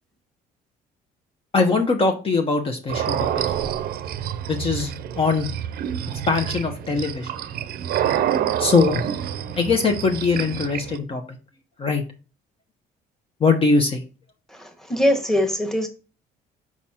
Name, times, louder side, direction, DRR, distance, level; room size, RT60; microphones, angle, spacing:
voice 1, 1.5-3.7 4.5-5.5 6.3-7.3 8.6-9.0 9.6-11.4 11.8-12.0 13.4-14.0, left 4 dB, 35° left, 3 dB, 1.1 m, -21 dB
sound 1, 2.9-11.0, right 10 dB, 65° right, 0.6 m, -27 dB
voice 2, 14.9-15.9, left 1 dB, ahead, 3 dB, 1.4 m, -21 dB
6.1 x 4.1 x 4.3 m, 0.34 s
cardioid pair, 110°, 17 cm